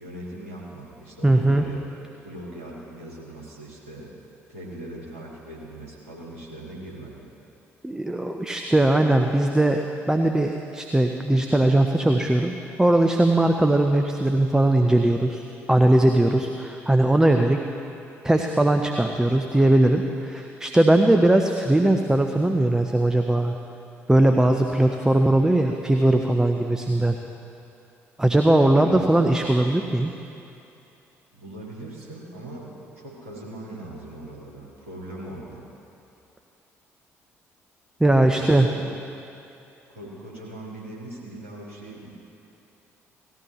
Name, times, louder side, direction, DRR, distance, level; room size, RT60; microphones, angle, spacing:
voice 1, 0.0-1.8 2.2-4.1 4.5-7.2 19.2-19.6 26.9-27.1 28.7-29.0 31.3-35.6 38.1-38.9 39.9-42.2, right 1 dB, 80° right, -6 dB, 2.2 m, -40 dB
voice 2, 1.2-1.6 7.8-9.8 10.1-17.6 18.2-23.5 24.1-27.2 28.2-30.1 38.0-38.7, right 1 dB, 10° right, 4 dB, 0.6 m, -20 dB
18.0 x 13.0 x 3.0 m, 2.8 s
figure-of-eight pair, 45°, 7 cm